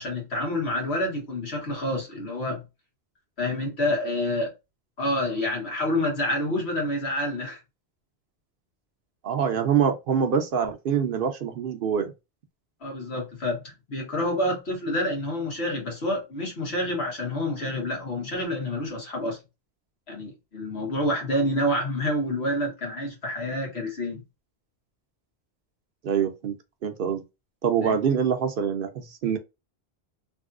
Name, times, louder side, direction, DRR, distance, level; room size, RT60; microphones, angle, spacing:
voice 1, 0.0-2.6 3.4-4.5 5.0-7.6 12.8-19.4 20.1-24.2 27.8-28.0, left 1 dB, 90° left, 1.8 m, -28 dB
voice 2, 9.2-12.1 26.0-26.6 26.8-27.2 27.6-29.4, right 7 dB, 60° right, 0.7 m, -25 dB
3.4 x 2.8 x 2.4 m
omnidirectional pair, 1.1 m